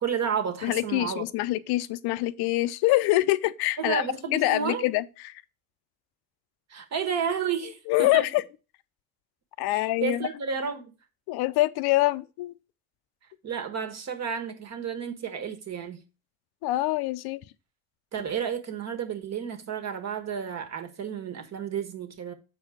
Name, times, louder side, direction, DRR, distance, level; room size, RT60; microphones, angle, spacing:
voice 1, 0.0-1.2 3.8-4.8 6.7-8.3 9.7-10.9 13.4-16.0 18.1-22.3, right 7 dB, 45° right, 1.5 m, -31 dB
voice 2, 0.6-4.0 4.3-5.4 7.9-8.4 9.6-10.3 11.3-12.5 16.6-17.4, left 17 dB, 75° left, 0.6 m, -25 dB
7.1 x 4.6 x 4.9 m
cardioid pair, 110°, 38 cm